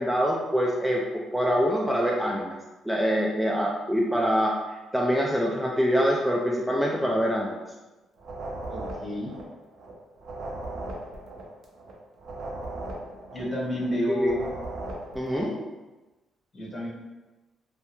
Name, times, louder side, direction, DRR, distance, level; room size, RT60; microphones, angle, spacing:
voice 1, 0.0-2.6 2.8-4.6 4.9-7.6 14.1-14.3 15.1-15.6, equal, 5° right, -2 dB, 0.3 m, -25 dB
sound 1, 8.2-9.9 10.2-13.9 14.2-15.5, right 2 dB, 65° right, 0.5 m, -37 dB
voice 2, 8.7-9.3 13.3-14.4 16.5-16.9, equal, 40° left, -5 dB, 1.0 m, -30 dB
2.2 x 2.1 x 2.9 m, 1.1 s
cardioid pair, 75°, 0 cm